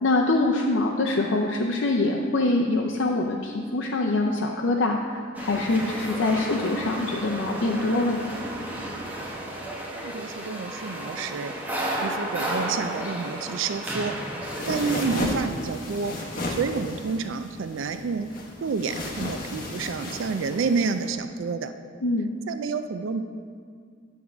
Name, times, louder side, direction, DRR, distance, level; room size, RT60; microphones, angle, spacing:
voice 1, 0.0-8.3 22.0-22.3, left 2 dB, 65° left, 0 dB, 0.5 m, -24 dB
sound 1, 5.3-15.2, right 1 dB, 10° right, 1.0 m, -33 dB
voice 2, 9.9-11.5 12.0-14.2 14.7-16.1 16.5-18.3 18.6-21.7 22.5-23.2, right 5 dB, 70° right, 9 dB, 0.4 m, -29 dB
sound 2, 14.4-21.1, left 1 dB, 45° left, 1.1 m, -33 dB
9.5 x 3.6 x 7.0 m, 2.1 s
head